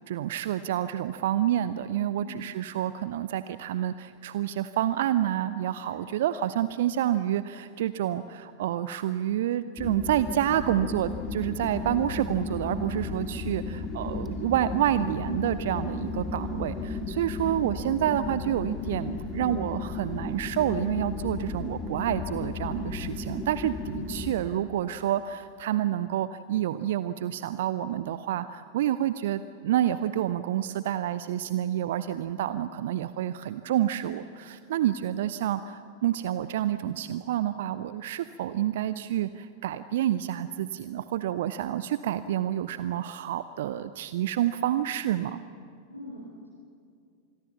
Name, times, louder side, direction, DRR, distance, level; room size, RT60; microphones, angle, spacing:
voice 1, 0.1-45.4, right 12 dB, 55° right, 14 dB, 0.6 m, -28 dB
voice 2, 2.1-2.4 5.8-6.1 17.3-17.7 24.0-24.3 32.7-33.3 45.9-46.5, left 1 dB, 80° left, -7 dB, 8.0 m, -46 dB
sound 1, 9.8-24.3, left 3 dB, 20° left, 2.2 m, -34 dB
26.5 x 21.5 x 7.2 m, 2.3 s
figure-of-eight pair, 90°, 0 cm